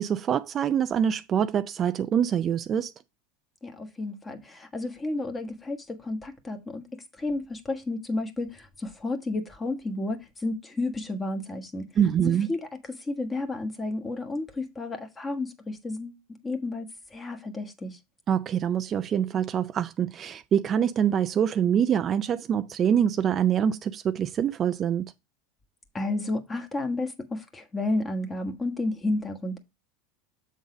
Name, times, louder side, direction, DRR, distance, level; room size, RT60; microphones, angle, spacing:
voice 1, 0.0-2.9 12.0-12.5 18.3-25.1, right 8 dB, 30° right, 0.4 m, -25 dB
voice 2, 3.6-6.9 7.2-11.9 12.2-12.6 13.0-18.0 25.9-29.6, left 2 dB, 20° left, 1.3 m, -32 dB
7.3 x 3.9 x 4.9 m
supercardioid pair, 120°, 0 cm